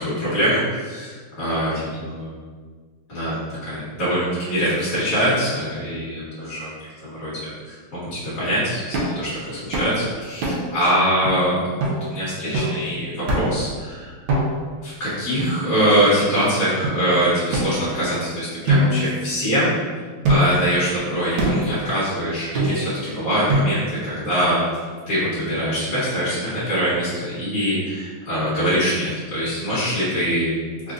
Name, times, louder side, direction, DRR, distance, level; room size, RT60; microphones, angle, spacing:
voice 1, 0.0-2.4 3.1-3.3 3.6-6.7 7.0-14.1 14.8-19.7 20.3-24.6 25.1-30.5, equal, 45° left, -11 dB, 1.6 m, -23 dB
sound 1, 8.9-9.2 9.7-10.0 10.4-10.8 11.2-11.3 11.8-12.0 12.5-12.8 13.3-13.6 14.3-14.7 15.4-16.1 16.8-17.0 17.5-18.2 18.7-19.7 20.2-20.7 21.4-21.7 22.5-23.0 23.5-24.0, right 1 dB, 70° right, 1.4 m, -23 dB
3.8 x 3.3 x 2.5 m, 1.5 s
omnidirectional pair, 2.4 m